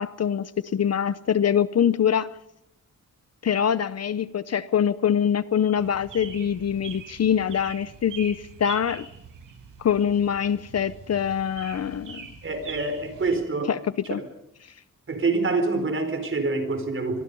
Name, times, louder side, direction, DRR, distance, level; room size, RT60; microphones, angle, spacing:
voice 1, 0.0-2.3 3.4-9.1 9.8-12.3 13.7-13.8 14.1-14.2, left 8 dB, 55° left, 0.8 m, -24 dB
sound 1, 5.8-13.4, right 6 dB, 85° right, 5.1 m, -43 dB
voice 2, 12.4-13.8 14.2-14.3 15.1-17.2, right 3 dB, 40° right, 4.6 m, -26 dB
26.5 x 23.0 x 5.5 m
wide cardioid pair, 160°, 31 cm